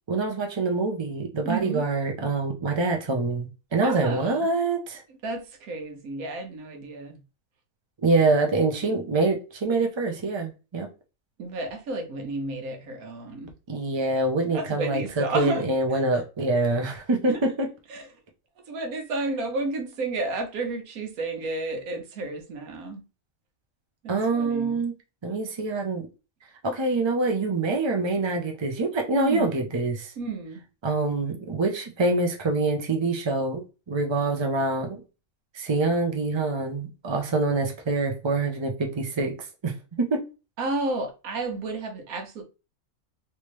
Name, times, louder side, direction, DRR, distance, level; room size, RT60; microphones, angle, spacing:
voice 1, 0.1-5.0 8.0-10.9 13.7-17.7 24.1-24.9 25.2-26.1 26.6-30.1 30.8-35.0 35.5-39.4 39.6-40.2, right 3 dB, 40° right, 0.4 m, -25 dB
voice 2, 1.4-1.8 3.8-4.5 5.2-7.2 11.4-13.5 14.5-15.6 15.9-16.2 17.3-17.4 17.9-18.1 18.7-23.0 24.0-24.8 29.1-29.7 30.2-30.6 40.6-42.4, right 2 dB, 75° right, 1.3 m, -32 dB
3.3 x 2.8 x 3.1 m
omnidirectional pair, 1.5 m